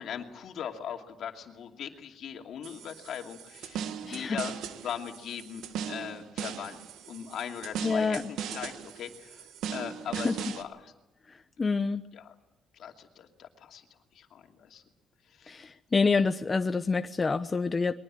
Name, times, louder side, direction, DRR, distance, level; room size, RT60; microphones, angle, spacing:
voice 1, 0.0-4.5 4.8-6.8 7.1-9.5 9.7-10.9 12.1-12.3 12.7-13.8 14.1-14.8 15.3-15.7, left 8 dB, 70° left, 3 dB, 2.6 m, -40 dB
sound 1, 2.6-10.6, right 8 dB, 85° right, 1.6 m, -39 dB
voice 2, 4.0-4.4 7.8-8.2 10.2-10.3 11.6-12.0 15.5-17.9, left 4 dB, 30° left, 9 dB, 0.8 m, -27 dB
22.5 x 19.5 x 8.8 m, 0.97 s
cardioid pair, 90°, 0 cm